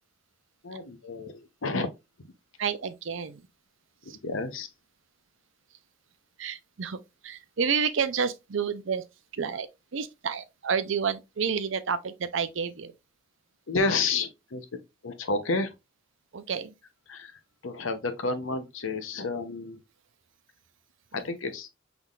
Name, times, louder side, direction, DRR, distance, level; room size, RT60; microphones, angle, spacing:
voice 1, 0.6-1.9 4.2-4.7 13.7-14.7 15.0-15.7 17.1-19.8 21.1-21.7, left 3 dB, 70° left, 0.8 m, -30 dB
voice 2, 2.6-3.5 4.1-4.2 6.4-9.0 9.3-12.9 16.3-16.7 21.1-21.2, right 6 dB, 65° right, 0.5 m, -30 dB
5.6 x 3.4 x 2.4 m
head